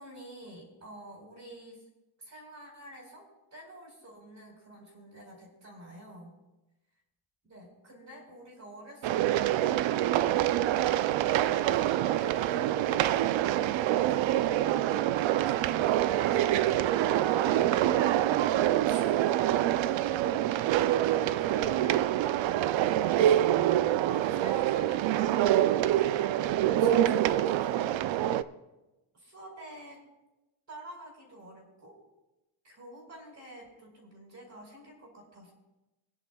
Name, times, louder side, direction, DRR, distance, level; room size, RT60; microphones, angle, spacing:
voice 1, 0.0-1.8 2.2-6.3 7.4-10.4 10.8-15.0 18.6-20.3 21.0-22.1 23.1-23.4 23.7-28.3 29.1-30.0 30.7-32.0 32.6-35.5, right 1 dB, 35° right, -2 dB, 4.2 m, -49 dB
sound 1, 9.0-28.4, right 12 dB, 70° right, 0.5 m, -26 dB
25.5 x 10.0 x 2.3 m, 1.0 s
cardioid pair, 180°, 48 cm